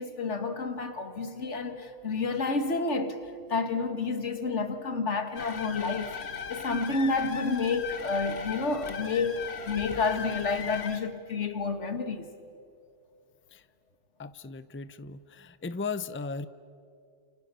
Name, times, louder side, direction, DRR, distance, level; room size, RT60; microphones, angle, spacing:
voice 1, 0.0-6.2 6.5-12.3, left 4 dB, 90° left, 2.0 m, -30 dB
sound 1, 5.4-11.0, left 6 dB, 65° left, 1.6 m, -38 dB
voice 2, 14.2-16.5, left 4 dB, 15° left, 0.5 m, -36 dB
30.0 x 29.0 x 6.9 m
omnidirectional pair, 1.2 m